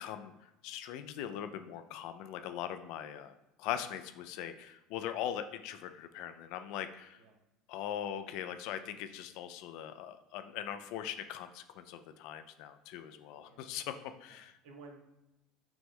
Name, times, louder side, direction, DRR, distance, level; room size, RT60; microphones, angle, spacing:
voice 1, 0.0-7.2 7.7-13.9 14.2-14.5, left 10 dB, 70° left, 9 dB, 0.4 m, -41 dB
voice 2, 14.3-15.1, right 3 dB, 75° right, 3 dB, 0.8 m, -54 dB
5.8 x 2.0 x 3.7 m, 0.94 s
hypercardioid pair, 80°, 0 cm